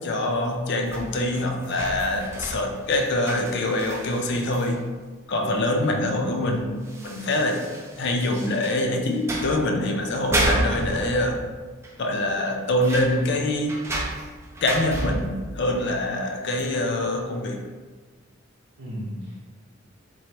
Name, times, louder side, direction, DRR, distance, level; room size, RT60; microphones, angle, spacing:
voice 1, 0.0-4.8 5.3-7.6 8.0-11.4 12.0-13.8 14.6-17.6, left 1 dB, 60° left, 3 dB, 0.5 m, -25 dB
sound 1, 0.9-4.7 5.8-5.9 6.2-6.3 6.8-8.9 9.2-9.7 10.1-11.6 11.8-11.9 12.2-15.5 16.6-16.7, right 1 dB, 15° right, 0.5 m, -31 dB
voice 2, 5.7-6.4 18.8-19.4, equal, 80° right, -8 dB, 0.8 m, -36 dB
4.7 x 3.0 x 2.9 m, 1.4 s
head